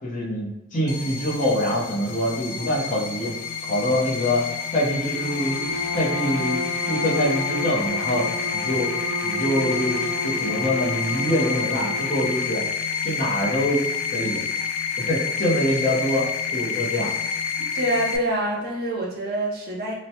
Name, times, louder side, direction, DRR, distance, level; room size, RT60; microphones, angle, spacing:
voice 1, 0.0-3.3 3.6-4.5 4.7-6.6 6.9-8.9 9.2-12.6 13.0-13.8 14.1-14.4 15.0-16.3 16.5-17.1, equal, 40° left, -6 dB, 0.8 m, -25 dB
sound 1, 0.9-18.2, left 6 dB, 90° left, 0.3 m, -28 dB
Bowed string instrument, 5.1-12.6, equal, 85° right, 0.5 m, -32 dB
voice 2, 17.7-19.9, right 1 dB, 45° right, -3 dB, 0.6 m, -26 dB
2.9 x 2.1 x 2.8 m, 0.91 s
head